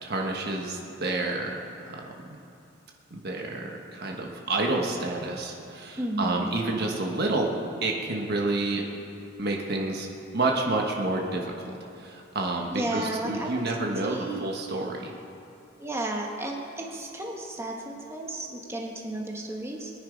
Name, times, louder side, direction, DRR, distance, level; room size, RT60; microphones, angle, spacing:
voice 1, 0.0-1.6 1.9-2.0 3.1-7.5 7.8-8.8 9.4-10.1 10.3-11.7 12.0-15.1, right 2 dB, 55° right, 0 dB, 1.3 m, -29 dB
voice 2, 6.0-6.5 12.7-13.6 14.0-14.5 15.8-19.9, right 1 dB, 15° right, -1 dB, 1.6 m, -33 dB
22.5 x 10.0 x 5.1 m, 2.6 s
head